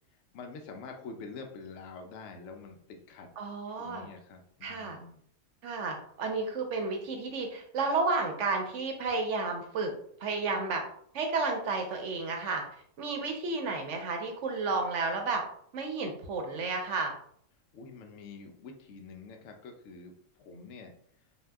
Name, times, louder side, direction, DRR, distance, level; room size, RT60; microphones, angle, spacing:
voice 1, 0.3-3.3 3.8-5.2 17.7-20.1 20.4-20.9, left 4 dB, 65° left, 3 dB, 0.8 m, -46 dB
voice 2, 3.4-4.1 4.6-5.0 5.6-9.9 10.2-10.8 11.1-12.6 13.0-15.4 15.7-17.1, right 3 dB, 65° right, 3 dB, 0.8 m, -32 dB
2.7 x 2.2 x 3.3 m, 0.64 s
omnidirectional pair, 1.5 m